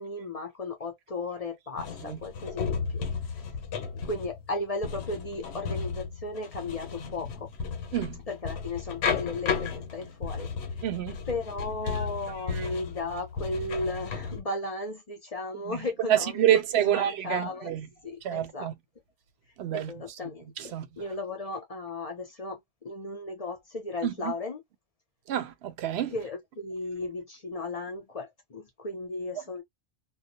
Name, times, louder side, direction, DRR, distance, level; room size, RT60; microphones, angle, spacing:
voice 1, 0.0-3.5 4.0-7.5 8.3-10.5 11.3-17.7 18.0-18.7 19.7-24.6 26.1-29.6, left 2 dB, 45° left, 0.6 m, -35 dB
sound 1, 1.8-14.4, left 5 dB, 85° left, 0.9 m, -34 dB
voice 2, 10.8-11.2 15.7-15.8 16.1-17.8 18.2-18.7 19.6-19.9 20.6-20.9 24.0-24.1 25.3-26.1, right 11 dB, 80° right, 0.8 m, -27 dB
2.2 x 2.0 x 2.7 m
omnidirectional pair, 1.1 m